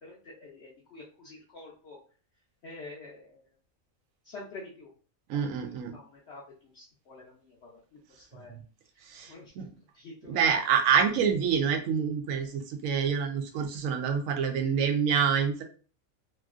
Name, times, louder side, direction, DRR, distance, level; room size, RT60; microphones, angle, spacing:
voice 1, 0.0-2.0 2.6-3.4 4.3-4.9 5.7-6.4 6.7-7.5 8.2-8.5 9.3-9.5 10.0-10.5, left 3 dB, 60° left, -3 dB, 0.8 m, -47 dB
voice 2, 5.3-5.9 9.1-9.7 10.3-15.6, right 7 dB, 75° right, 5 dB, 1.0 m, -27 dB
3.0 x 2.4 x 2.4 m, 0.40 s
omnidirectional pair, 1.4 m